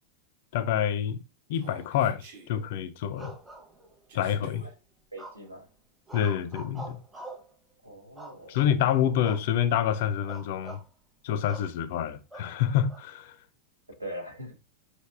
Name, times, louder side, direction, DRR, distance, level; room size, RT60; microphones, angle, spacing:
voice 1, 0.5-1.2 1.5-3.3 4.1-4.7 6.1-7.0 8.5-10.8 11.2-13.4, left 9 dB, 50° left, 0.3 m, -27 dB
Human voice, 1.5-2.5 4.1-4.7, right 2 dB, 60° right, 0.9 m, -49 dB
sound 1, 3.1-4.2 5.2-5.6 6.1-7.5 8.2-8.7 9.2-9.5 9.8-9.9 10.3-10.8 11.5-11.7 12.3-13.0, right 1 dB, 10° right, 0.7 m, -44 dB
voice 2, 5.1-5.6 7.8-8.6 14.0-14.5, right 1 dB, 85° right, 0.9 m, -41 dB
4.0 x 3.3 x 2.3 m
figure-of-eight pair, 90°, 0 cm